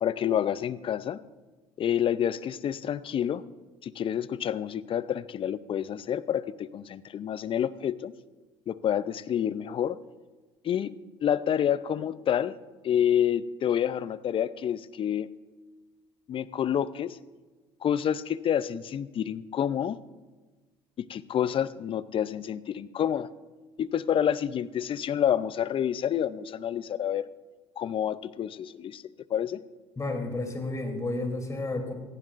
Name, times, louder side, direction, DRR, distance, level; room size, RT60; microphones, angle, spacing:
voice 1, 0.0-1.2 1.8-3.4 3.8-8.1 8.7-10.0 10.6-10.9 11.2-12.6 12.8-15.3 16.3-17.2 17.8-20.0 21.0-23.3 23.8-27.3 27.8-29.0 29.3-29.6, left 9 dB, 40° left, 17 dB, 0.6 m, -28 dB
voice 2, 30.0-31.9, left 2 dB, 25° left, 3 dB, 3.3 m, -31 dB
17.5 x 15.0 x 2.6 m, 1.3 s
hypercardioid pair, 70°, 13 cm